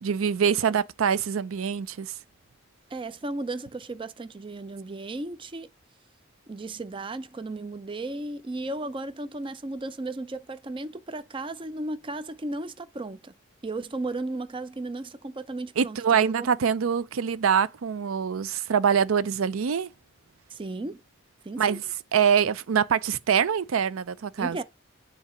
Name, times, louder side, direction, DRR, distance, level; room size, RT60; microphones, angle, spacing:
voice 1, 0.0-2.1 15.8-19.9 21.6-21.8 22.1-24.6, right 7 dB, 85° right, 0.5 m, -24 dB
voice 2, 2.9-5.7 6.5-13.3 13.6-16.5 20.5-21.0 21.4-21.8 24.4-24.6, right 2 dB, 25° right, 0.5 m, -35 dB
7.3 x 2.9 x 4.9 m
head